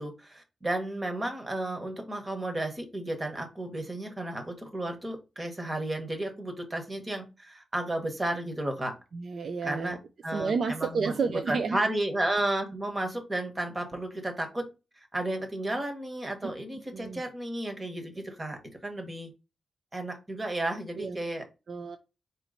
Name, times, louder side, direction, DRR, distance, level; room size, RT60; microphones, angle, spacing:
voice 1, 0.0-8.9 9.6-10.0 10.2-14.6 15.0-19.3 19.9-21.4, right 1 dB, 25° right, 1.3 m, -33 dB
voice 2, 9.1-10.0 10.3-11.8 16.4-16.5 16.9-17.2 21.0-21.2 21.7-22.0, right 5 dB, 60° right, 0.4 m, -31 dB
4.3 x 3.1 x 3.9 m
wide cardioid pair, 105°, 0 cm